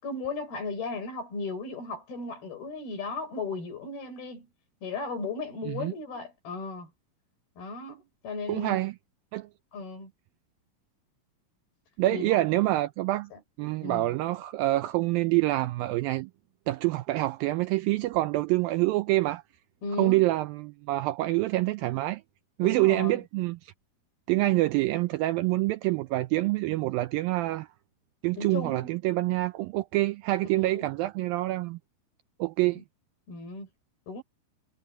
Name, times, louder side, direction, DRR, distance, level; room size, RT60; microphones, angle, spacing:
voice 1, 0.0-4.5 4.8-6.9 7.6-8.8 9.7-10.1 12.1-12.4 13.3-13.4 13.8-14.2 19.8-20.3 22.6-23.2 28.4-28.9 30.5-30.9 32.8-32.9 33.3-33.7 34.1-34.2, left 3 dB, 70° left, 7.9 m, -36 dB
voice 2, 8.5-8.9 9.3-9.5 12.0-13.3 13.6-16.3 16.7-19.4 20.0-22.2 22.6-23.7 24.3-27.7 28.2-31.8 32.4-32.8, right 18 dB, 85° right, 2.1 m, -26 dB
omnidirectional pair, 4.6 m